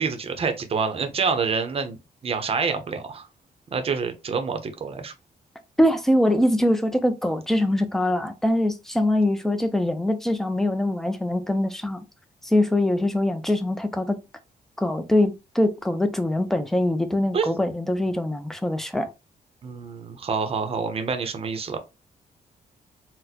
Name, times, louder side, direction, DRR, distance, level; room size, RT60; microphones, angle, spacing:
voice 1, 0.0-2.0 2.2-3.3 3.7-5.1 17.3-17.5 19.6-21.8, right 5 dB, 40° right, 0.6 m, -27 dB
voice 2, 5.8-12.0 12.4-14.2 14.8-19.1, left 1 dB, ahead, 0.4 m, -23 dB
4.0 x 2.1 x 2.7 m
cardioid pair, 125°, 15 cm